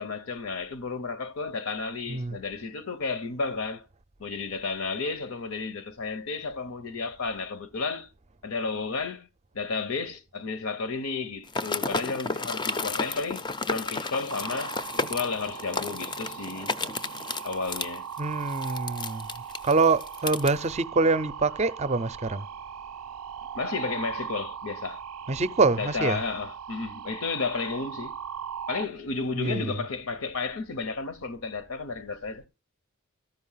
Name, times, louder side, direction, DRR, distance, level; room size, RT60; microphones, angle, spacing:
voice 1, 0.0-3.8 4.2-8.1 8.4-9.3 9.5-16.8 17.4-18.1 23.5-25.0 25.8-28.2 28.7-32.4, left 4 dB, 70° left, 0.8 m, -32 dB
sound 1, 11.5-20.5, left 3 dB, 20° left, 0.5 m, -32 dB
sound 2, 14.3-28.8, right 7 dB, 80° right, 0.5 m, -39 dB
voice 2, 18.2-19.3 19.6-22.5 25.3-26.2 29.4-29.8, right 3 dB, 30° right, 0.5 m, -25 dB
13.5 x 5.3 x 5.6 m
head